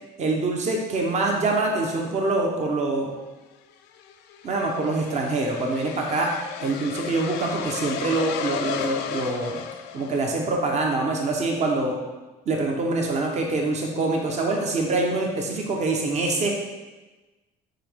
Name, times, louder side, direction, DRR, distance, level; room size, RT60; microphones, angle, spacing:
voice 1, 0.2-3.1 4.4-6.3 6.6-9.6 9.9-12.0 12.5-16.5, right 2 dB, 45° right, 0 dB, 1.0 m, -25 dB
sound 1, 3.5-10.6, left 9 dB, 85° left, 0.4 m, -34 dB
5.7 x 4.6 x 3.6 m, 1.2 s
cardioid pair, 110°, 17 cm